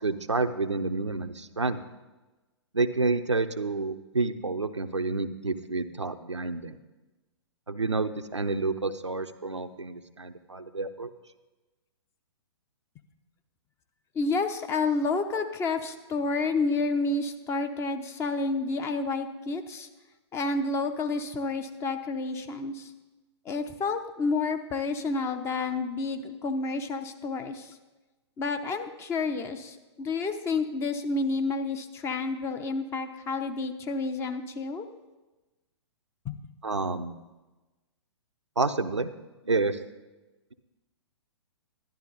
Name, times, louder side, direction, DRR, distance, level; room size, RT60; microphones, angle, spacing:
voice 1, 0.0-1.8 2.7-6.8 7.7-11.1 36.6-37.1 38.6-39.1 39.4-39.8, right 3 dB, 90° right, 8 dB, 0.6 m, -29 dB
voice 2, 14.1-19.9 20.3-22.9 23.5-27.8 28.4-34.9 36.2-36.4, left 3 dB, 20° left, 7 dB, 0.7 m, -30 dB
12.0 x 11.0 x 4.0 m, 1.1 s
figure-of-eight pair, 115°, 15 cm